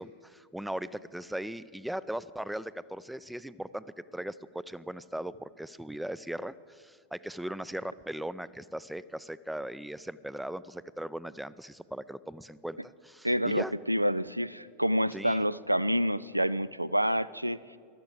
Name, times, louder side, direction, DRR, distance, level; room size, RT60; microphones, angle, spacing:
voice 1, 0.0-13.7 15.1-15.4, right 1 dB, 5° right, 17 dB, 0.4 m, -38 dB
voice 2, 13.2-17.6, equal, 85° right, 18 dB, 0.3 m, -28 dB
13.5 x 12.0 x 7.7 m, 2.2 s
figure-of-eight pair, 90°, 0 cm